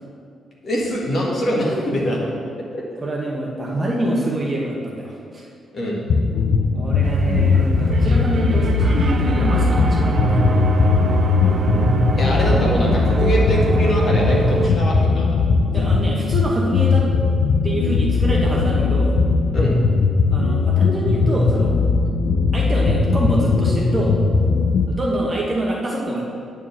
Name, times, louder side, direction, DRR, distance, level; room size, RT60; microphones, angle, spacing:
voice 1, 0.6-2.3 5.7-6.0 12.2-15.4 15.8-15.9 19.5-19.7, left 1 dB, 35° left, -4 dB, 1.8 m, -23 dB
voice 2, 3.0-5.5 6.7-10.4 15.7-17.1 17.6-19.2 20.3-21.7 22.5-24.1 24.9-26.2, right 1 dB, 20° right, -2 dB, 1.1 m, -25 dB
sound 1, 6.1-24.9, left 4 dB, 55° left, 0.5 m, -19 dB
sound 2, 7.0-14.7, right 5 dB, 40° right, 0.6 m, -23 dB
9.2 x 4.6 x 7.2 m, 2.4 s
wide cardioid pair, 170°, 0 cm